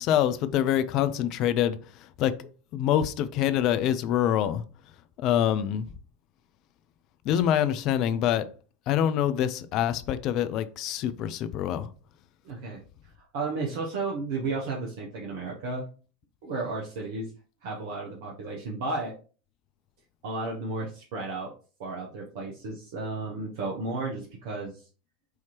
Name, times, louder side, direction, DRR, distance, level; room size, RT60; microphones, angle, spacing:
voice 1, 0.0-1.8 2.2-2.3 2.7-4.6 5.2-5.9 7.2-8.5 8.9-11.9, left 10 dB, 45° left, 0.4 m, -25 dB
voice 2, 12.4-12.8 13.2-15.8 16.4-17.3 17.6-19.1 20.2-21.5 21.8-24.9, right 3 dB, 60° right, 0.9 m, -33 dB
4.8 x 2.8 x 3.0 m
figure-of-eight pair, 80°, 0 cm